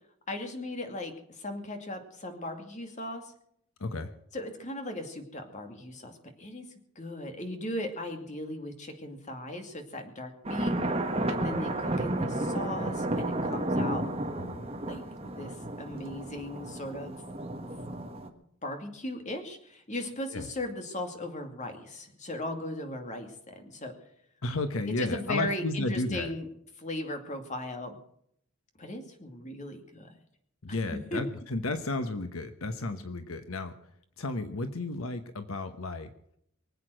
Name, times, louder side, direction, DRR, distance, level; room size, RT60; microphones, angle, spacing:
voice 1, 0.3-3.3 4.3-6.7 7.0-10.8 11.3-14.1 14.9-17.2 17.6-17.8 18.6-23.9 24.9-26.5 26.8-28.0 28.8-30.1 30.9-31.2, left 1 dB, 35° left, 5 dB, 2.5 m, -37 dB
voice 2, 3.8-4.1 14.4-14.7 20.3-20.5 24.4-26.3 30.6-33.7 34.2-36.1, left 2 dB, 75° left, 8 dB, 1.1 m, -33 dB
sound 1, 10.4-18.3, right 1 dB, 25° right, 1.6 m, -32 dB
24.5 x 8.4 x 6.4 m, 0.70 s
head